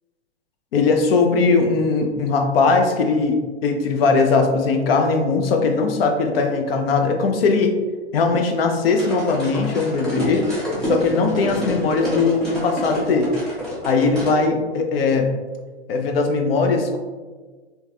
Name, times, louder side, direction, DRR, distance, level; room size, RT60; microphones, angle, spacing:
voice 1, 0.7-7.8 8.1-10.5 10.9-13.3 13.8-15.3 15.9-17.0, left 4 dB, 55° left, 5 dB, 0.5 m, -19 dB
sound 1, 8.9-14.4, equal, ahead, 0.4 m, -28 dB
3.2 x 2.2 x 2.3 m, 1.4 s
hypercardioid pair, 125°, 35 cm